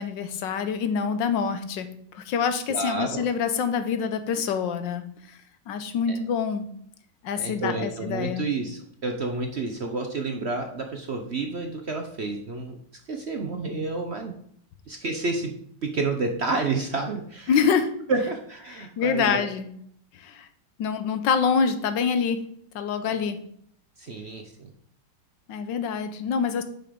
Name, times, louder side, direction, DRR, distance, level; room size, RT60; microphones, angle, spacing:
voice 1, 0.0-5.4 5.7-6.6 7.2-8.5 17.5-17.9 19.0-19.7 20.1-20.5 20.8-22.4 22.7-23.4 25.5-26.6, left 6 dB, 80° left, 10 dB, 1.5 m, -26 dB
voice 2, 2.7-3.2 6.1-6.2 7.3-12.8 13.1-14.4 14.9-15.5 15.8-17.6 18.1-19.5 23.1-23.2 24.0-24.7, right 3 dB, 50° right, 4 dB, 0.8 m, -30 dB
8.7 x 6.0 x 5.1 m, 0.66 s
omnidirectional pair, 2.0 m